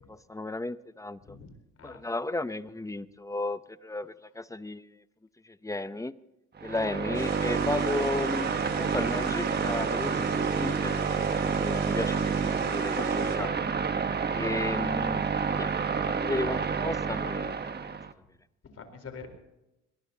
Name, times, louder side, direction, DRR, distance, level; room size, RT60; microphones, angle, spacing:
voice 1, 0.1-1.4 1.8-4.9 5.4-6.2 6.6-13.6 14.3-15.7 16.0-17.6, left 2 dB, 10° left, 14 dB, 0.7 m, -34 dB
voice 2, 1.2-2.0 17.8-18.0 18.7-19.3, left 5 dB, 55° left, 6 dB, 4.1 m, -46 dB
sound 1, 6.6-18.1, right 5 dB, 35° right, 1.2 m, -29 dB
sound 2, 7.1-13.4, right 5 dB, 80° right, 3.9 m, -37 dB
21.5 x 20.5 x 2.8 m, 0.92 s
cardioid pair, 90°, 30 cm